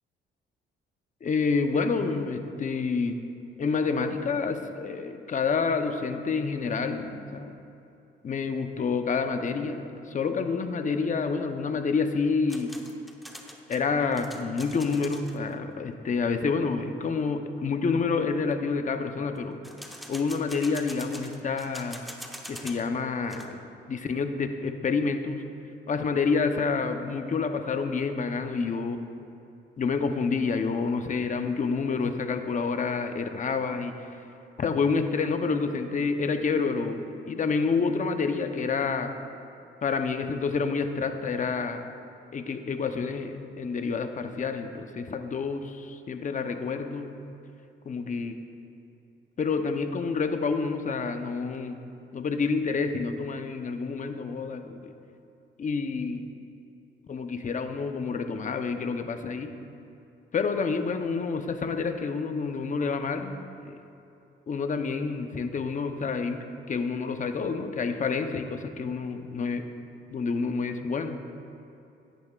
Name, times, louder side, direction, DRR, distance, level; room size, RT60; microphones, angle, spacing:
voice 1, 1.2-3.2 3.6-7.5 8.2-12.7 13.7-19.6 20.1-22.0 22.5-23.6 23.9-25.4 25.9-29.0 29.8-33.9 34.6-39.1 39.8-41.8 42.3-47.2 47.9-48.4 49.4-51.8 52.1-54.9 55.6-56.3 57.1-59.5 60.3-63.8 64.5-69.7 70.1-71.2, left 4 dB, 40° left, 7 dB, 0.8 m, -28 dB
sound 1, 12.5-15.4 19.6-22.9 23.2-23.5, equal, ahead, 0.9 m, -44 dB
14.5 x 10.5 x 2.4 m, 2.7 s
cardioid pair, 90°, 20 cm